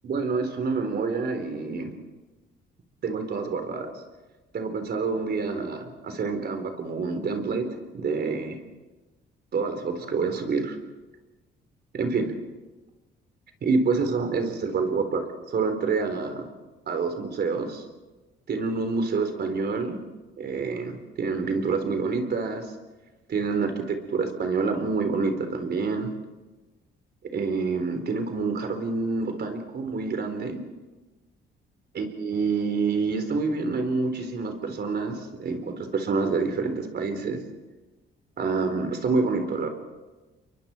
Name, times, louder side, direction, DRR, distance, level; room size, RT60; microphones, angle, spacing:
voice 1, 0.0-1.9 3.0-3.9 4.5-7.7 7.9-8.6 9.5-10.8 11.9-12.3 13.6-16.4 16.9-17.8 18.5-20.0 20.4-22.7 23.3-26.1 27.3-30.6 31.9-37.4 38.4-39.7, right 4 dB, 55° right, 6 dB, 4.0 m, -27 dB
29.5 x 23.0 x 4.5 m, 1.2 s
cardioid pair, 90°, 20 cm